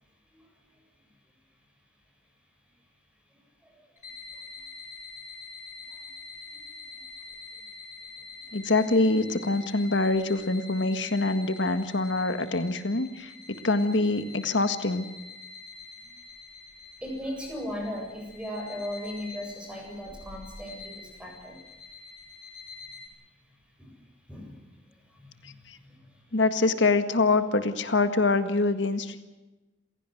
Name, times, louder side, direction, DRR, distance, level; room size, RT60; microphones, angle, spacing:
sound 1, 4.0-23.1, left 4 dB, 45° left, 6.3 m, -46 dB
voice 1, 8.5-15.0 25.4-25.8 26.3-29.2, left 3 dB, 75° left, 9 dB, 1.8 m, -25 dB
voice 2, 17.0-21.6 23.8-23.9 24.3-24.5 25.4-25.5 25.8-25.9, equal, 5° right, 1 dB, 7.8 m, -37 dB
27.5 x 17.5 x 7.9 m, 1.1 s
head